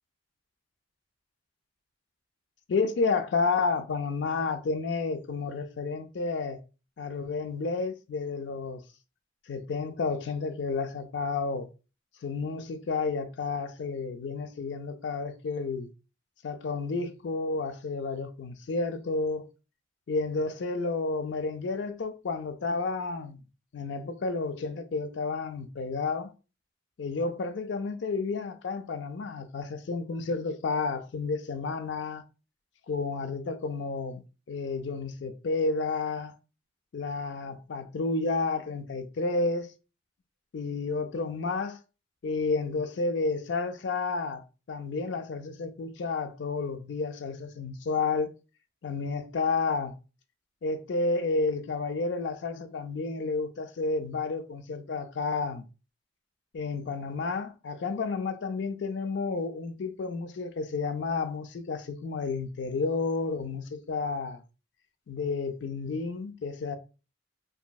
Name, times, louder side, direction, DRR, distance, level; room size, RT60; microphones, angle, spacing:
voice 1, 2.7-6.6 7.0-8.8 9.5-11.7 12.2-15.9 16.4-19.5 20.1-23.4 23.7-26.3 27.0-32.2 32.9-34.2 34.5-36.3 36.9-39.7 40.5-41.8 42.2-44.4 44.7-48.3 48.8-49.9 50.6-55.6 56.5-64.4 65.1-66.8, left 3 dB, 65° left, 0.4 m, -31 dB
3.0 x 2.6 x 2.2 m
head